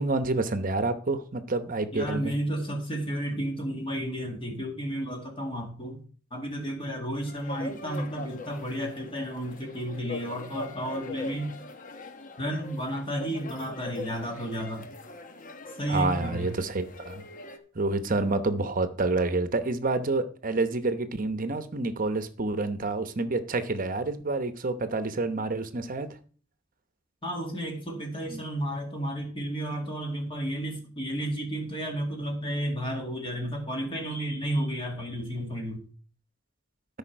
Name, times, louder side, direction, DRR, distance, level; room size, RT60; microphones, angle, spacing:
voice 1, 0.0-2.3 15.9-17.2 17.7-26.1 28.3-28.4, right 3 dB, 45° right, 0.9 m, -28 dB
voice 2, 1.9-6.0 6.3-11.5 12.4-14.9 15.8-16.5 27.2-35.8, equal, 30° left, 2.1 m, -32 dB
sound 1, 7.1-17.6, left 2 dB, 45° left, 1.1 m, -41 dB
13.0 x 5.6 x 4.5 m
head